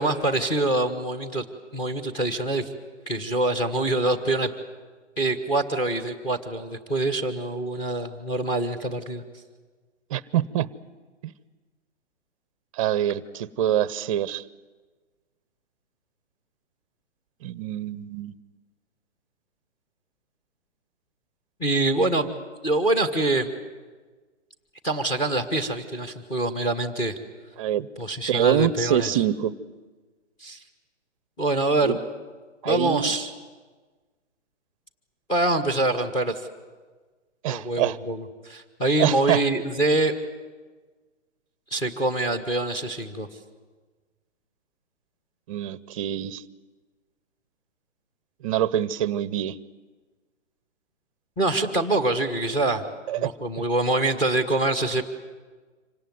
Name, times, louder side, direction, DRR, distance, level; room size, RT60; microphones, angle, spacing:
voice 1, 0.0-1.4 1.7-2.7 3.1-4.5 5.2-9.2 21.6-22.3 22.6-23.5 24.8-27.1 28.0-29.1 30.4-30.6 31.4-32.0 32.6-33.3 35.3-36.5 37.5-40.1 41.7-43.3 51.4-52.8 53.2-55.0, right 2 dB, 10° left, 9 dB, 1.3 m, -25 dB
voice 2, 10.1-10.7 11.2-11.3 12.8-14.4 17.4-18.3 27.6-27.9 28.3-29.5 31.8-32.0 32.6-33.1 37.4-38.0 39.0-39.4 45.5-46.4 48.4-49.6 53.1-53.3 53.6-53.7, right 11 dB, 30° right, 19 dB, 0.7 m, -25 dB
25.5 x 18.0 x 9.5 m, 1.4 s
hypercardioid pair, 145°, 36 cm